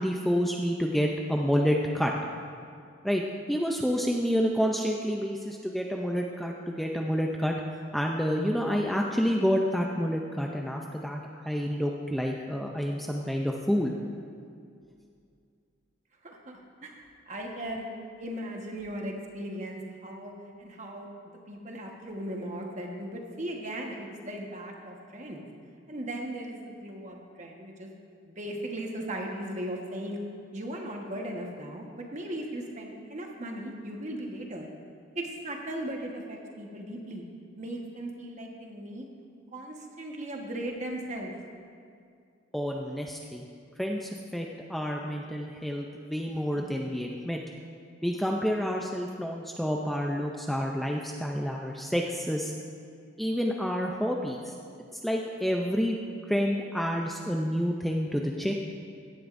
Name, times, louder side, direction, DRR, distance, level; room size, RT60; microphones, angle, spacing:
voice 1, 0.0-2.1 3.0-3.2 3.5-7.5 7.9-11.2 11.4-13.9 42.5-43.4 43.8-47.4 48.0-52.5 53.2-54.6 55.0-56.0 56.3-58.6, equal, ahead, 0 dB, 0.4 m, -29 dB
voice 2, 16.2-17.9 18.2-20.3 20.6-21.1 21.5-25.5 25.9-27.9 28.3-30.2 30.5-34.7 35.1-37.2 37.6-39.1 39.5-41.3, right 1 dB, 35° right, 1 dB, 1.3 m, -37 dB
16.0 x 11.0 x 2.6 m, 2.3 s
head